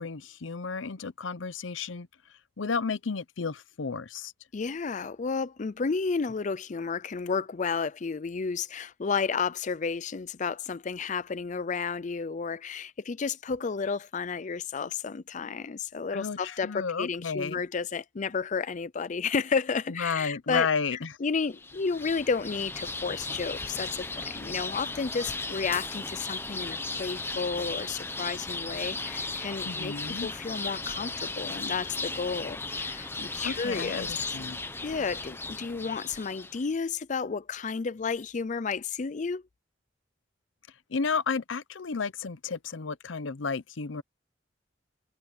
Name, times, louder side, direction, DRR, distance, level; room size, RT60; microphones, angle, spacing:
voice 1, 0.0-2.1 2.6-4.3 16.1-17.6 19.9-21.2 29.6-30.3 33.4-34.6 40.9-44.0, left 5 dB, 85° left, 0.7 m, -32 dB
voice 2, 4.5-20.7 20.9-29.9 30.2-34.4 34.8-39.4, left 5 dB, 40° left, 0.5 m, -32 dB
sound 1, 21.5-36.7, left 3 dB, 10° left, 1.0 m, -36 dB
head